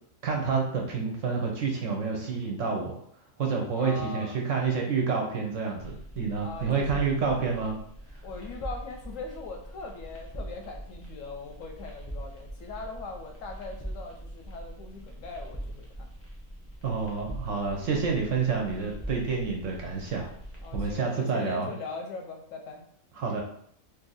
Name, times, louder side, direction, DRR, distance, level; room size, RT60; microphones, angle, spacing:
voice 1, 0.2-3.0 3.4-7.8 16.8-20.3 20.7-21.7 23.2-23.4, right 5 dB, 65° right, 0 dB, 0.9 m, -28 dB
voice 2, 3.8-4.4 6.4-7.1 8.2-15.9 20.6-22.8, left 3 dB, 70° left, 2 dB, 0.8 m, -40 dB
sound 1, 5.8-21.0, right 1 dB, 20° left, 0.3 m, -42 dB
2.7 x 2.6 x 3.9 m, 0.66 s
omnidirectional pair, 1.6 m